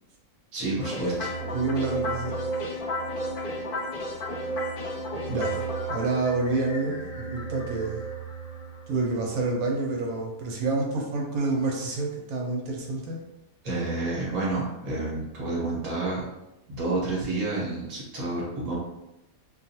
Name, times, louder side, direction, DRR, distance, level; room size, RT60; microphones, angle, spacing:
voice 1, 0.5-1.3 13.6-16.3 16.7-18.7, right 2 dB, 30° right, -6 dB, 0.8 m, -29 dB
sound 1, 0.8-10.0, right 1 dB, 65° left, 0.5 m, -33 dB
voice 2, 1.5-2.4 5.3-5.6 5.9-8.0 8.9-13.2, right 3 dB, 85° right, 0 dB, 1.1 m, -28 dB
2.5 x 2.3 x 2.7 m, 0.92 s
omnidirectional pair, 1.5 m